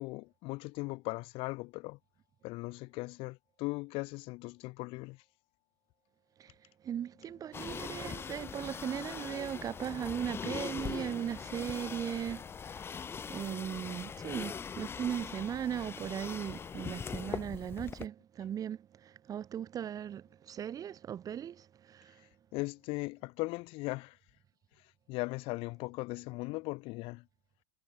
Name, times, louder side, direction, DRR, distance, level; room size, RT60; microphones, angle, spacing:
voice 1, 0.0-2.0 2.4-5.2 22.2-24.2 24.8-27.3, left 23 dB, 55° left, 1.1 m, -39 dB
voice 2, 6.8-22.2, right 9 dB, 30° right, 1.6 m, -38 dB
sound 1, 7.5-18.1, left 6 dB, 20° left, 0.7 m, -41 dB
hypercardioid pair, 105°, 11 cm